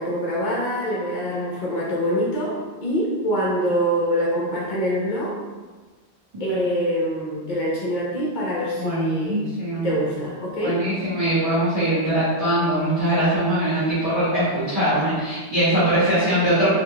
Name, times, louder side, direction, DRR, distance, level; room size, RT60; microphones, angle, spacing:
voice 1, 0.0-2.6 2.8-5.3 6.4-9.4 9.8-10.8 16.0-16.4, equal, 50° left, -5 dB, 0.7 m, -25 dB
voice 2, 8.7-9.9 10.6-16.7, right 1 dB, 35° right, -13 dB, 1.4 m, -22 dB
4.1 x 2.3 x 3.3 m, 1.3 s
omnidirectional pair, 1.1 m